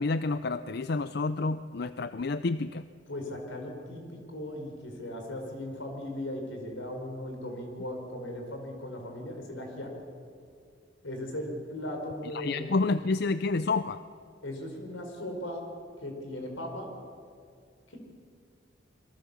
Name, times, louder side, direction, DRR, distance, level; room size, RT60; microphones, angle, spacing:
voice 1, 0.0-2.8 12.3-14.0, left 3 dB, 55° left, 13 dB, 0.5 m, -29 dB
voice 2, 3.1-9.9 11.0-12.8 14.4-15.6 16.0-16.9 17.9-18.0, left 1 dB, 85° left, 3 dB, 5.2 m, -38 dB
27.5 x 22.5 x 7.1 m, 2.2 s
head